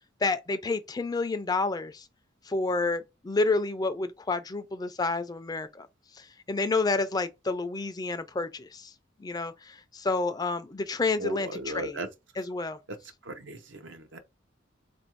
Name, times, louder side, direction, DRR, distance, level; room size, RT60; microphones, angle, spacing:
voice 1, 0.2-2.0 2.5-5.9 6.2-8.9 9.2-12.0 12.4-12.8, left 3 dB, 20° left, 0.4 m, -29 dB
voice 2, 11.2-12.1 13.2-14.2, right 1 dB, 70° right, 0.8 m, -37 dB
3.8 x 2.5 x 4.4 m
head